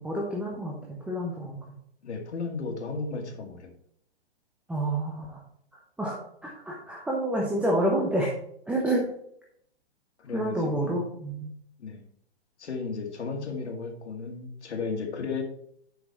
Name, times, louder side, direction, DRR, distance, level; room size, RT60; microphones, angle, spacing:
voice 1, 0.0-1.6 4.7-5.4 6.0-8.3 8.7-9.0 10.3-11.5, right 1 dB, 5° right, -3 dB, 0.9 m, -28 dB
voice 2, 2.0-3.7 10.2-10.9 11.8-12.0 12.6-15.4, left 4 dB, 80° left, 3 dB, 2.1 m, -34 dB
7.9 x 6.0 x 4.5 m, 0.70 s
hypercardioid pair, 145°, 33 cm